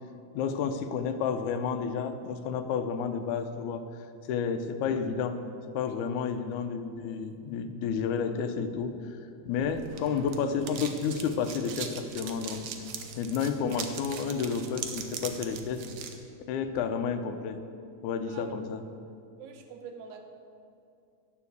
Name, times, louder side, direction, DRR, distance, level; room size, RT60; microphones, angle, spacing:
voice 1, 0.3-3.8 4.3-5.4 5.7-9.2 9.5-12.6 13.2-15.8 16.5-17.6 18.0-18.8, left 6 dB, 90° left, 8 dB, 2.1 m, -31 dB
sound 1, 9.5-16.2, right 6 dB, 70° right, 1.9 m, -40 dB
voice 2, 19.4-20.2, right 6 dB, 90° right, 5 dB, 2.4 m, -45 dB
10.5 x 5.9 x 7.9 m, 2.6 s
omnidirectional pair, 3.3 m